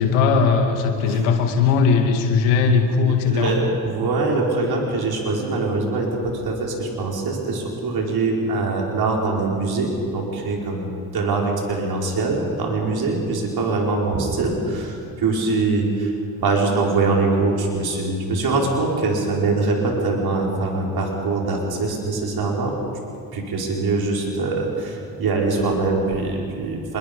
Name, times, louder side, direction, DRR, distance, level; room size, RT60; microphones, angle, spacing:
voice 1, 0.0-3.5, left 5 dB, 85° left, 4 dB, 2.3 m, -18 dB
voice 2, 3.3-22.7 23.3-27.0, right 3 dB, 60° right, -1 dB, 5.3 m, -23 dB
25.5 x 22.0 x 5.5 m, 2.5 s
supercardioid pair, 60°, 43 cm